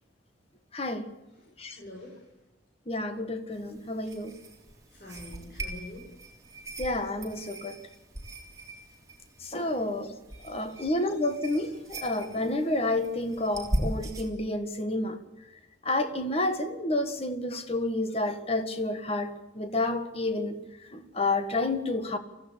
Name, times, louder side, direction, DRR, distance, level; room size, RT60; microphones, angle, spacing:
voice 1, 0.7-1.1 1.6-1.8 2.9-4.3 6.8-7.8 9.4-10.1 10.4-15.2 15.8-20.6 20.9-22.2, left 2 dB, 35° left, 1.7 m, -30 dB
voice 2, 1.3-2.3 4.9-6.1 9.7-9.9 10.3-11.1, left 1 dB, 55° left, 5.4 m, -47 dB
sound 1, 3.5-14.3, right 1 dB, 20° right, 3.4 m, -39 dB
23.5 x 15.5 x 8.5 m
head